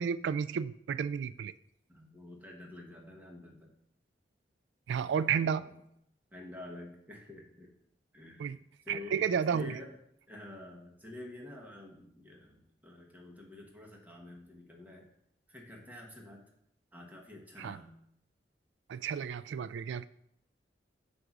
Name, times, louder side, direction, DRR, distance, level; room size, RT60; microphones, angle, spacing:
voice 1, 0.0-1.5 4.9-5.7 8.4-8.6 8.9-9.8 17.6-17.8 18.9-20.1, right 7 dB, 85° right, 15 dB, 0.3 m, -32 dB
voice 2, 1.9-3.7 5.3-5.8 6.3-7.7 8.1-8.5 8.8-10.0 10.3-15.1 15.5-16.4 16.9-18.0, left 2 dB, 10° right, -1 dB, 1.1 m, -48 dB
7.8 x 2.7 x 6.0 m, 0.74 s
head